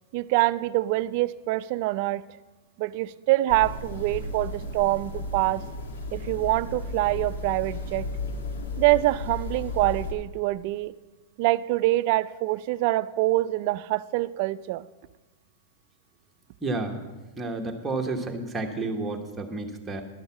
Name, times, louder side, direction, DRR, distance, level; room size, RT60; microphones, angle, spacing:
voice 1, 0.1-2.2 2.8-5.6 6.1-8.1 8.8-10.9 11.4-14.9, right 18 dB, 45° right, 15 dB, 0.3 m, -25 dB
sound 1, 3.5-10.1, left 2 dB, 85° left, 1.6 m, -34 dB
voice 2, 16.6-17.0 17.4-20.0, right 2 dB, 10° right, 2 dB, 1.0 m, -31 dB
11.5 x 6.4 x 7.2 m, 1.2 s
supercardioid pair, 150°, 0 cm